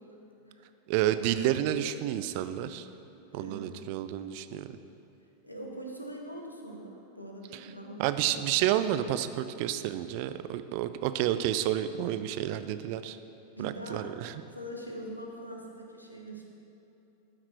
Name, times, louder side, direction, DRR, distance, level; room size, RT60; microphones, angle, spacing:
voice 1, 0.9-2.9 3.3-4.7 8.0-13.2 13.6-14.3, right 12 dB, 45° right, 11 dB, 0.4 m, -30 dB
voice 2, 3.3-3.7 5.4-8.1 8.4-8.5 13.6-14.2 14.5-16.4, right 1 dB, 85° left, 1 dB, 1.1 m, -42 dB
13.0 x 5.9 x 4.4 m, 2.9 s
figure-of-eight pair, 90°, 0 cm